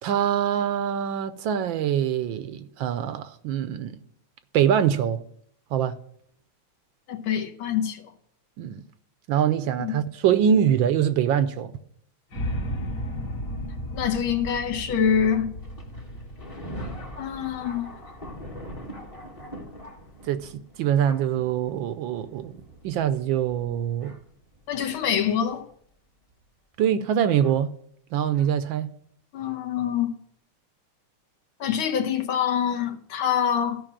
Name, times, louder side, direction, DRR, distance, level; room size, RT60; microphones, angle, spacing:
voice 1, 0.0-4.0 4.5-5.2 5.7-6.0 8.6-8.8 9.3-11.7 20.2-24.1 26.8-27.7 28.1-28.9, right 9 dB, 75° right, 1.3 m, -24 dB
voice 2, 7.1-8.0 9.8-9.9 13.9-15.5 17.2-17.9 24.7-25.6 29.3-30.1 31.6-33.8, left 8 dB, 75° left, 1.7 m, -25 dB
sound 1, 12.3-18.4, equal, 50° left, 2.1 m, -34 dB
Thunder, 15.6-25.5 26.3-26.4 27.4-27.6 28.3-28.5, equal, 20° left, 1.1 m, -43 dB
12.5 x 5.6 x 7.3 m
omnidirectional pair, 2.3 m